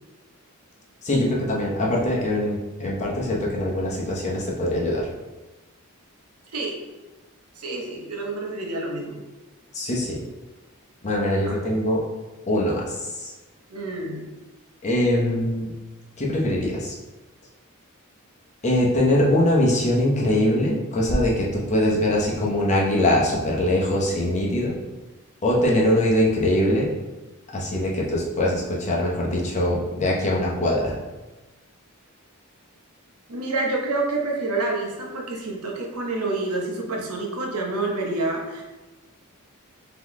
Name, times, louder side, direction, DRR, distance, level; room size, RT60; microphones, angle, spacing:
voice 1, 1.0-5.0 9.7-10.2 11.0-12.0 12.5-13.3 14.8-15.7 16.2-16.9 18.6-24.8 25.4-26.9 27.5-30.9, left 1 dB, 30° left, -3 dB, 0.7 m, -22 dB
voice 2, 7.6-9.2 11.4-11.5 13.7-14.3 33.3-38.6, right 2 dB, 80° right, 0 dB, 0.8 m, -28 dB
3.8 x 2.9 x 3.5 m, 1.1 s
head